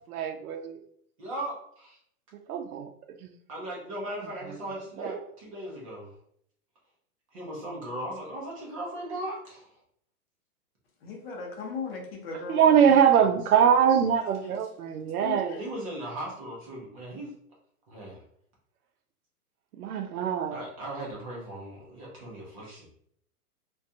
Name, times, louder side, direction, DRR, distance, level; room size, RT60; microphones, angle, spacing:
voice 1, 0.1-0.8 2.5-2.9 3.2-3.3 4.5-4.6 5.0-5.1 12.5-15.6 19.8-20.6, right 8 dB, 70° right, 6 dB, 0.6 m, -23 dB
voice 2, 1.2-2.0 3.5-6.1 7.3-9.7 15.6-17.3 17.9-18.2 20.5-22.9, right 1 dB, 25° right, -3 dB, 0.4 m, -38 dB
voice 3, 11.0-13.0 14.4-14.6 15.2-15.7, left 4 dB, 40° left, 0 dB, 0.6 m, -37 dB
2.5 x 2.2 x 2.6 m, 0.68 s
hypercardioid pair, 155°, 46 cm